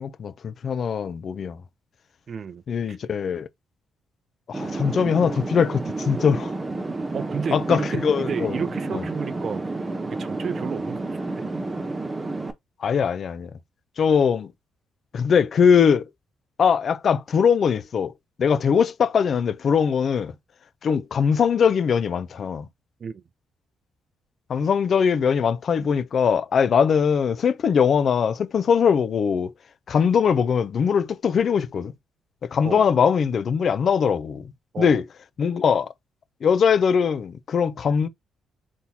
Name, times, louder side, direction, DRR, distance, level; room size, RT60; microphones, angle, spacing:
voice 1, 0.0-1.6 2.7-3.5 4.5-6.5 7.5-8.6 8.9-9.0 12.8-13.5 14.0-14.5 15.1-16.1 16.6-18.1 18.4-20.3 20.8-22.7 24.5-29.5 29.9-31.9 32.5-34.4 34.8-35.0 35.4-35.9 36.4-38.1, left 6 dB, 55° left, 0.6 m, -21 dB
voice 2, 2.3-2.6 2.9-3.0 7.1-9.7 10.1-11.1 12.8-12.9 23.0-23.2 32.6-32.9 34.7-35.0, right 6 dB, 50° right, 0.5 m, -32 dB
sound 1, 4.5-12.5, right 2 dB, 25° right, 1.0 m, -30 dB
4.1 x 3.7 x 2.9 m
cardioid pair, 90°, 0 cm